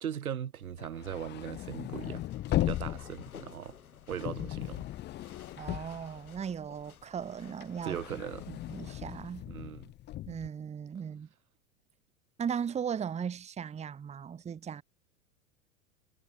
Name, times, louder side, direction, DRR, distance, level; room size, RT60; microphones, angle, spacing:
voice 1, 0.0-3.8 4.1-4.9 7.8-8.5 9.5-9.9, right 9 dB, 90° right, 1.6 m, -39 dB
sound 1, 0.7-6.8 7.2-10.5, left 14 dB, 25° left, 0.7 m, -37 dB
sound 2, 2.0-9.2, left 7 dB, 90° left, 4.0 m, -54 dB
voice 2, 5.6-8.0 8.5-9.5 10.3-11.3 12.4-14.8, right 7 dB, 15° right, 1.0 m, -37 dB
hypercardioid pair, 105°, 42 cm